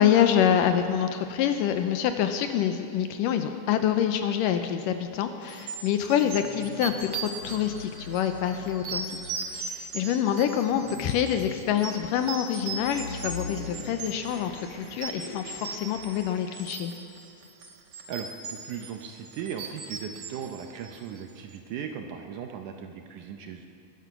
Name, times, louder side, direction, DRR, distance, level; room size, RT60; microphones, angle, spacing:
voice 1, 0.0-9.2 9.5-16.9, left 9 dB, 80° left, 8 dB, 2.1 m, -26 dB
sound 1, 5.5-21.3, right 5 dB, 55° right, 1.7 m, -39 dB
sound 2, 6.4-16.6, left 4 dB, 50° left, 2.1 m, -44 dB
voice 2, 18.1-23.7, right 7 dB, 75° right, 5 dB, 2.0 m, -37 dB
20.0 x 12.0 x 5.8 m, 2.5 s
omnidirectional pair, 4.2 m